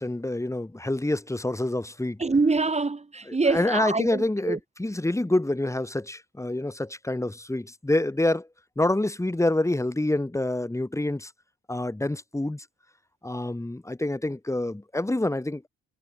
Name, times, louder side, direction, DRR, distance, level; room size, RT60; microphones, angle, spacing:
voice 1, 0.0-2.2 3.3-8.5 8.8-11.3 11.7-12.6 13.2-15.7, left 1 dB, 10° left, 3.3 m, -27 dB
voice 2, 2.2-4.6, right 3 dB, 20° right, 1.9 m, -25 dB
cardioid pair, 90°, 30 cm